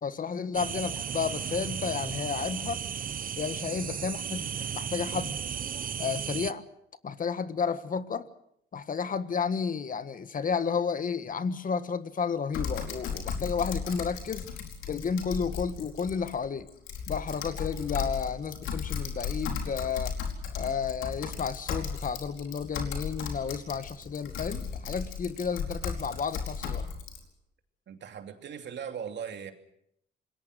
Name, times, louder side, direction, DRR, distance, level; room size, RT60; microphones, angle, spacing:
voice 1, 0.0-2.8 3.4-5.4 6.0-6.6 7.0-8.3 8.7-14.5 14.9-16.7 17.1-20.2 20.6-26.9, left 6 dB, 45° left, 1.5 m, -32 dB
sound 1, 0.5-6.5, right 8 dB, 45° right, 0.8 m, -35 dB
Typing, 12.5-27.2, left 6 dB, 85° left, 4.7 m, -35 dB
voice 2, 27.9-29.5, right 7 dB, 65° right, 2.9 m, -39 dB
27.0 x 21.0 x 6.6 m
cardioid pair, 90°, 20 cm